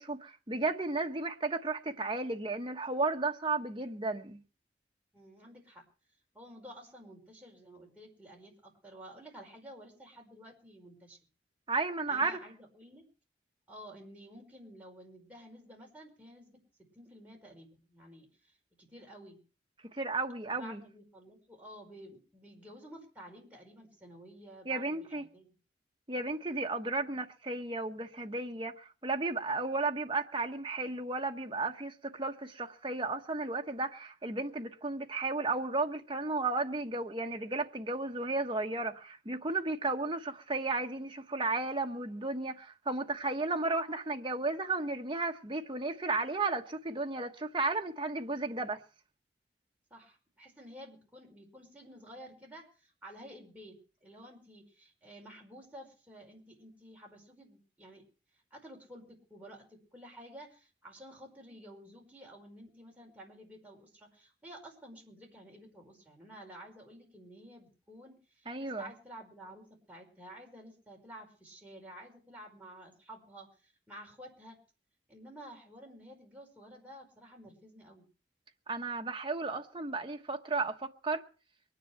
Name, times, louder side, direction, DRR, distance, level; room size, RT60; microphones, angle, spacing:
voice 1, 0.0-4.4 11.7-12.4 19.9-20.8 24.6-25.2 26.1-48.8 68.5-68.9 78.7-81.2, right 3 dB, 25° right, 1.2 m, -34 dB
voice 2, 5.1-5.8 6.3-11.2 12.1-13.0 13.7-19.4 20.5-25.5 49.9-58.0 58.5-74.6 75.1-78.1, equal, 10° right, 5.1 m, -52 dB
23.0 x 10.0 x 4.6 m
head